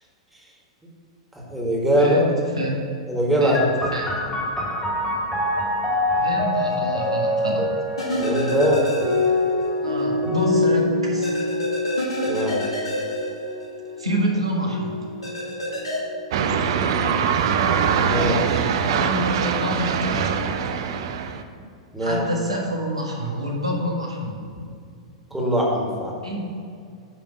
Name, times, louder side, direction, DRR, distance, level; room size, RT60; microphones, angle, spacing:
voice 1, 1.3-2.3 3.1-3.6 8.2-8.8 12.3-12.6 18.1-18.6 21.9-22.3 25.3-26.1, equal, 5° right, -3 dB, 1.8 m, -22 dB
voice 2, 2.0-2.3 2.6-2.7 3.4-4.1 6.1-7.6 9.8-11.3 14.0-15.0 18.8-20.4 22.0-24.4 26.2-26.4, equal, 85° right, -1 dB, 1.5 m, -27 dB
sound 1, 3.5-16.8 17.6-18.4, left 2 dB, 15° left, 2.1 m, -26 dB
sound 2, 8.0-9.7 10.0-10.1 11.2-14.0 15.2-16.0, equal, 80° left, 1.9 m, -28 dB
sound 3, 16.3-21.4, right 7 dB, 55° right, 0.5 m, -22 dB
9.3 x 3.5 x 5.8 m, 2.3 s
figure-of-eight pair, 100°, 3 cm